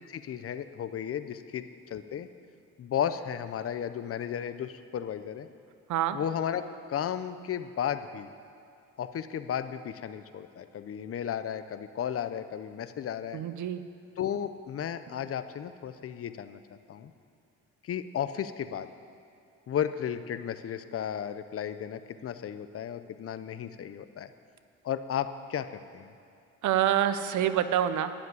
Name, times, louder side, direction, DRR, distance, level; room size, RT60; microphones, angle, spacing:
voice 1, 0.0-2.3 2.8-5.5 6.1-6.6 6.9-8.3 9.0-13.4 14.2-17.1 17.8-18.9 19.7-24.3 24.8-26.1, left 9 dB, 50° left, 11 dB, 0.7 m, -34 dB
voice 2, 13.3-13.8 26.6-28.1, right 10 dB, 75° right, 11 dB, 0.7 m, -26 dB
11.0 x 7.3 x 9.6 m, 2.5 s
cardioid pair, 90°, 30 cm